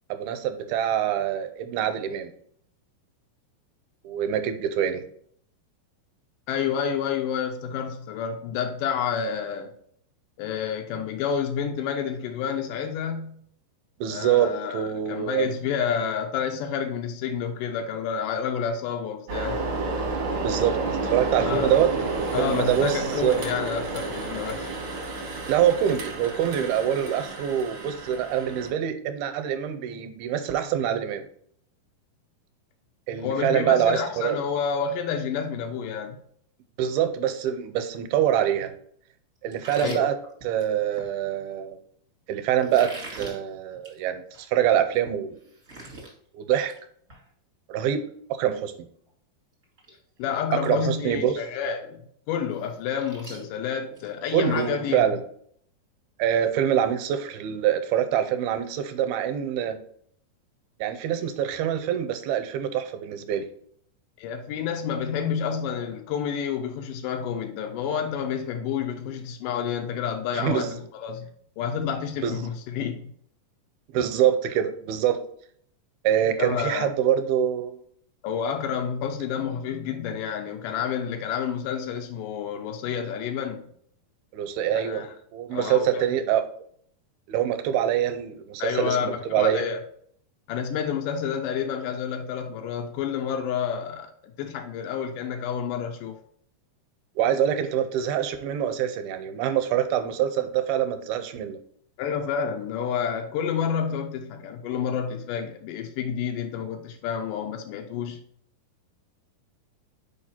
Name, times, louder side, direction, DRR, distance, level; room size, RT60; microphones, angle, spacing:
voice 1, 0.1-2.3 4.0-5.0 14.0-15.5 20.4-20.8 21.0-21.9 22.4-23.4 25.5-31.3 33.1-34.4 36.8-38.7 39.4-40.2 40.4-41.8 42.3-45.4 46.3-46.7 47.7-48.0 48.4-48.9 50.6-51.4 54.3-55.2 56.2-59.8 60.8-63.5 70.3-70.8 72.2-72.4 73.9-75.2 76.0-77.8 84.3-85.0 85.3-86.4 87.3-89.6 97.2-101.6, right 10 dB, 85° right, 2.5 m, -25 dB
voice 2, 6.5-9.7 10.4-13.4 14.1-19.7 21.4-21.7 22.3-24.7 33.2-36.2 39.8-40.1 50.2-52.0 52.3-55.1 64.2-70.7 71.0-71.3 71.6-73.1 76.4-76.9 78.2-83.6 84.7-85.1 85.5-86.1 88.6-89.8 90.5-96.2 102.0-108.2, left 7 dB, 85° left, 1.9 m, -29 dB
sound 1, 19.3-28.7, right 3 dB, 65° right, 1.3 m, -30 dB
sound 2, 39.5-41.1 42.6-43.4 43.7-44.0 44.3-44.4 44.9-45.0 45.3-46.1 46.5-46.8 47.1-47.2 49.1-49.2 49.6-49.9 50.2-50.7 51.1-51.2 52.5-54.8, right 2 dB, 45° right, 1.0 m, -42 dB
5.4 x 4.8 x 4.3 m
omnidirectional pair, 4.4 m